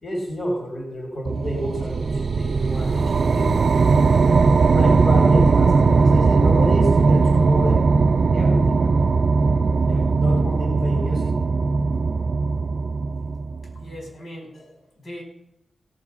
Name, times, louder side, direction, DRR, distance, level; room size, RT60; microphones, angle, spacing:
voice 1, 0.0-3.5 4.7-7.8 8.3-9.1 9.9-11.3, equal, 50° left, -1 dB, 2.9 m, -29 dB
sound 1, 1.3-13.8, right 4 dB, 55° right, 0.5 m, -19 dB
voice 2, 13.7-15.2, equal, 70° left, 0 dB, 4.7 m, -40 dB
17.0 x 7.3 x 5.6 m, 0.79 s
wide cardioid pair, 120°, 0 cm